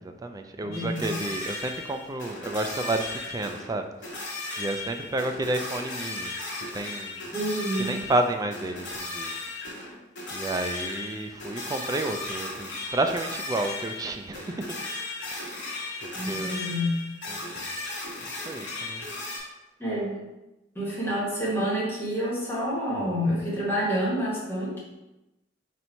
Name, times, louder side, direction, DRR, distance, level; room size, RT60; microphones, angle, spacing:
voice 1, 0.0-3.8 4.6-6.3 6.7-7.2 7.8-9.3 10.3-14.7 15.3-15.6 16.3-16.5 17.3-17.7 18.5-19.0, right 2 dB, 20° right, 6 dB, 0.3 m, -30 dB
voice 2, 0.6-1.1 7.3-7.9 16.1-17.1 19.8-20.2 20.7-24.8, equal, 15° left, -7 dB, 1.4 m, -28 dB
sound 1, 0.7-3.7 4.0-19.4, left 2 dB, 65° left, 1.3 m, -36 dB
4.2 x 2.7 x 4.4 m, 0.99 s
head